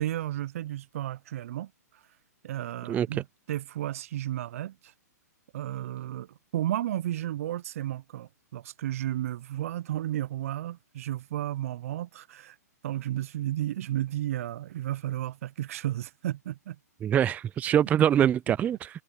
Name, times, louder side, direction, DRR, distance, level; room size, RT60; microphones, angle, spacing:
voice 1, 0.0-1.7 2.4-4.9 5.5-12.6 12.8-16.8, right 13 dB, 55° right, 0.7 m, -33 dB
voice 2, 17.0-18.9, right 10 dB, 15° right, 0.4 m, -24 dB
hypercardioid pair, 120°, 9 cm